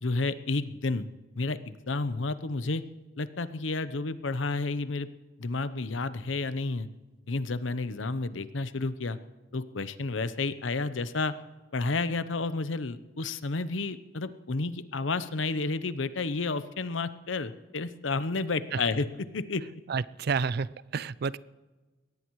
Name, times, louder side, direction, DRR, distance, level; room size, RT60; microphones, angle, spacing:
voice 1, 0.0-1.1 1.4-2.8 3.2-5.1 5.4-6.9 7.3-9.2 9.5-11.3 11.7-19.1 19.3-19.6, left 3 dB, 90° left, 13 dB, 0.8 m, -31 dB
voice 2, 19.9-21.4, right 5 dB, 55° right, 19 dB, 0.4 m, -30 dB
22.5 x 18.0 x 3.2 m, 1.2 s
head